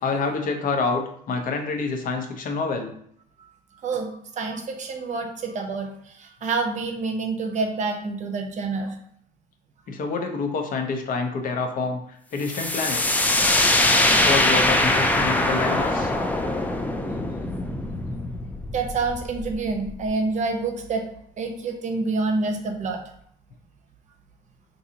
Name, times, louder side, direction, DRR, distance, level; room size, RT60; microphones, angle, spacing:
voice 1, 0.0-2.9 9.9-13.1 13.5-13.8 14.2-16.1, left 4 dB, 55° left, 4 dB, 0.7 m, -27 dB
voice 2, 3.8-9.0 18.7-21.0 21.4-23.0, right 3 dB, 45° right, 4 dB, 0.7 m, -27 dB
sound 1, 12.5-20.1, left 1 dB, 10° left, 0.3 m, -22 dB
3.9 x 2.7 x 2.8 m, 0.67 s
cardioid pair, 110°, 17 cm